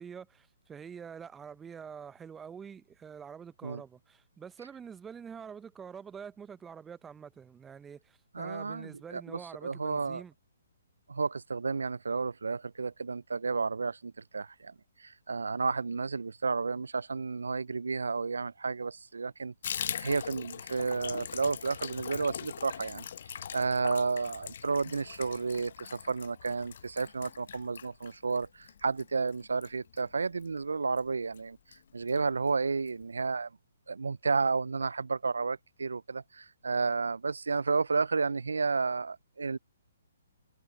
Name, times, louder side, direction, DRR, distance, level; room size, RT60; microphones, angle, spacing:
voice 1, 0.0-10.3, right 7 dB, 10° right, 0.8 m, -46 dB
voice 2, 8.3-10.2 11.1-14.7 15.0-23.1 23.5-31.6 31.9-33.5 33.9-39.6, right 4 dB, 75° right, 0.5 m, -32 dB
Water tap faucet / Bathtub (filling or washing), 19.6-30.6 30.9-31.1 31.3-31.4 31.7-32.2 32.5-32.6 32.9-33.0, left 8 dB, 55° left, 1.0 m, -42 dB
figure-of-eight pair, 130°, 0 cm